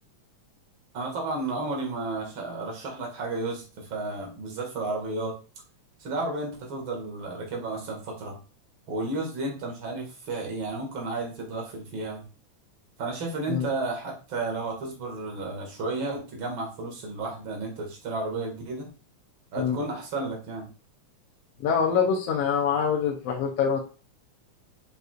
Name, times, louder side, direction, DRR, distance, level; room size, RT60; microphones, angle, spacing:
voice 1, 0.9-5.4 6.0-8.4 8.9-12.2 13.0-18.9 19.5-20.7, right 2 dB, 45° right, 0 dB, 2.6 m, -32 dB
voice 2, 21.6-23.8, left 7 dB, 70° left, 1 dB, 1.6 m, -24 dB
7.8 x 5.3 x 2.5 m, 0.34 s
omnidirectional pair, 3.4 m